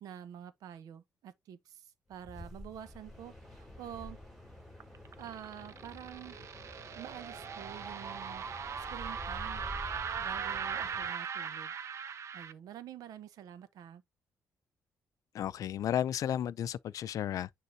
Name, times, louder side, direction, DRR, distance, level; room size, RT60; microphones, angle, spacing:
voice 1, 0.0-4.2 5.2-6.4 6.9-8.4 8.8-9.7 10.2-11.7 12.3-14.0, right 10 dB, 80° right, 1.0 m, -48 dB
sound 1, 2.1-11.1, left 1 dB, ahead, 5.3 m, -49 dB
sound 2, 4.8-12.5, right 7 dB, 50° right, 0.8 m, -39 dB
voice 2, 15.3-17.6, left 10 dB, 65° left, 0.5 m, -33 dB
9.7 x 3.7 x 2.8 m
cardioid pair, 110°, 6 cm